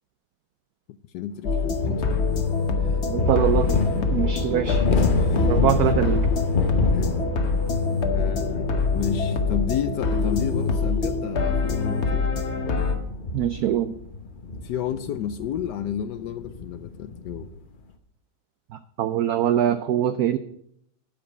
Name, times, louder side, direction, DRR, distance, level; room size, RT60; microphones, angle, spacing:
voice 1, 1.1-2.2 2.8-3.1 5.1-6.0 6.9-7.2 8.1-12.3 14.6-17.5, left 9 dB, 75° left, 12 dB, 1.0 m, -32 dB
sound 1, 1.4-12.9, left 4 dB, 45° left, 1.1 m, -25 dB
sound 2, 1.8-17.6, left 3 dB, 60° left, 0.5 m, -28 dB
voice 2, 3.1-3.8 4.1-4.8 5.5-6.2 13.3-13.9 19.0-20.4, right 11 dB, 85° right, 11 dB, 0.8 m, -23 dB
12.5 x 5.2 x 7.0 m, 0.71 s
omnidirectional pair, 2.2 m